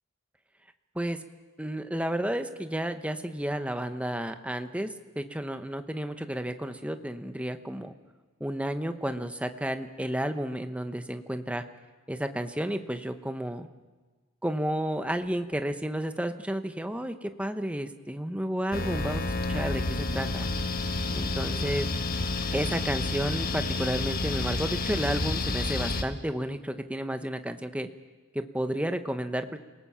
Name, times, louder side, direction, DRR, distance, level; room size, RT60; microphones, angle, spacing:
voice 1, 1.6-7.9 8.4-11.6 12.1-13.7 14.4-20.5 21.1-21.9 22.5-27.9 28.3-29.6, right 1 dB, 5° right, 8 dB, 0.9 m, -32 dB
sound 1, 18.7-26.0, left 2 dB, 45° left, 1.4 m, -30 dB
28.0 x 18.5 x 5.8 m, 1.3 s
head